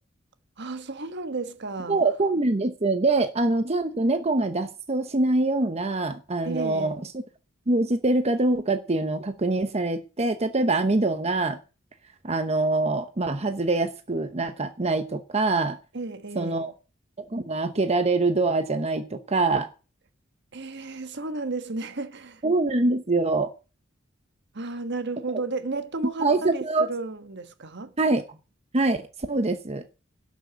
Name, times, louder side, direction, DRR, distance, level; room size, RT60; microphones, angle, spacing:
voice 1, 0.6-2.0 6.4-7.0 15.9-16.7 20.5-22.4 24.5-27.9, right 3 dB, 60° right, 1.3 m, -33 dB
voice 2, 1.9-6.9 7.7-11.6 12.2-15.8 16.4-16.7 17.3-19.7 22.4-23.5 26.2-26.9 28.0-28.2 28.7-29.0 29.3-29.8, right 2 dB, 35° right, 0.9 m, -24 dB
12.0 x 6.4 x 8.0 m
head